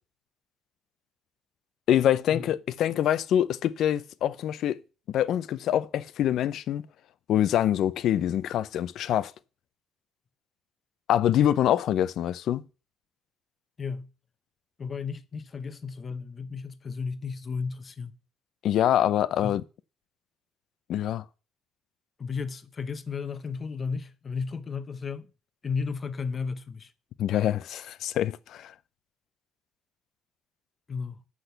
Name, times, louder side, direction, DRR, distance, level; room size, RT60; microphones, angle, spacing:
voice 1, 1.9-4.8 5.1-6.8 7.3-9.3 11.1-12.6 18.6-19.6 20.9-21.2 27.2-28.7, left 11 dB, 60° left, 0.6 m, -25 dB
voice 2, 13.8-14.1 14.8-18.2 19.4-19.6 22.2-25.3 25.6-26.9 30.9-31.2, left 5 dB, 30° left, 0.8 m, -34 dB
8.0 x 6.2 x 6.6 m
cardioid pair, 140°, 0 cm